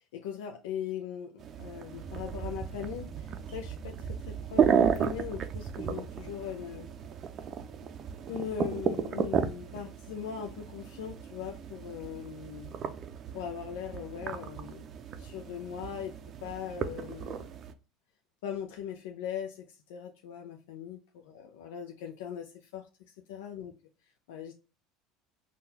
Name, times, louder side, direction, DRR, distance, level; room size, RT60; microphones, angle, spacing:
voice 1, 0.1-6.9 8.3-12.8 13.3-14.9 15.2-16.2 16.4-17.5 18.4-23.7 24.3-24.5, left 9 dB, 90° left, 0.5 m, -40 dB
sound 1, 1.4-17.7, right 8 dB, 40° right, 0.4 m, -34 dB
3.8 x 2.3 x 2.7 m
supercardioid pair, 120°, 0 cm